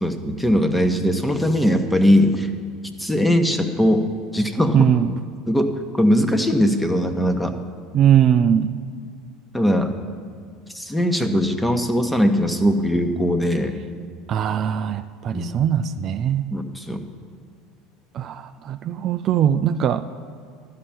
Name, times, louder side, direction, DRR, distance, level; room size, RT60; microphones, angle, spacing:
voice 1, 0.0-2.5 3.0-4.0 4.3-4.8 5.5-5.7 6.0-7.6 9.5-9.9 10.7-13.8 15.3-15.5 16.5-17.1, equal, 5° left, 6 dB, 1.1 m, -20 dB
voice 2, 4.7-5.2 7.9-8.8 14.3-16.4 18.1-20.1, right 9 dB, 45° right, 10 dB, 0.4 m, -20 dB
12.0 x 5.7 x 8.9 m, 2.2 s
hypercardioid pair, 80°, 0 cm